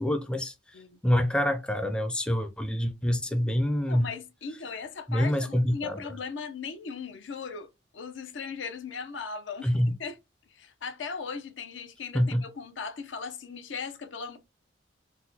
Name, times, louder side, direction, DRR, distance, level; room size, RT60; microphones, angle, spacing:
voice 1, 0.0-0.5 1.0-4.1 5.1-6.0 9.6-9.9 12.1-12.4, equal, 5° left, 0.3 m, -26 dB
voice 2, 3.9-7.7 7.9-10.2 10.5-14.4, left 5 dB, 75° left, 0.6 m, -38 dB
3.9 x 2.2 x 2.7 m
head